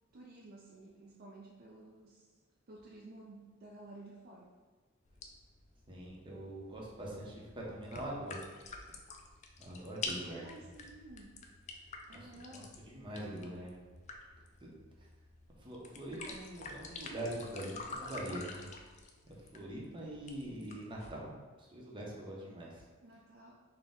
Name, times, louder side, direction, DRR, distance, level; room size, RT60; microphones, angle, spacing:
voice 1, 0.1-2.3 2.7-4.5 10.2-11.4 12.1-12.8 23.0-23.5, right 2 dB, 50° right, -2 dB, 0.4 m, -53 dB
sound 1, 5.1-21.1, left 3 dB, 35° left, 0.3 m, -48 dB
voice 2, 5.9-8.4 9.6-10.4 12.1-13.7 14.6-14.7 15.6-18.7 19.3-21.3 21.6-22.8, right 1 dB, 25° right, -4 dB, 0.7 m, -43 dB
4.1 x 2.1 x 3.5 m, 1.4 s
head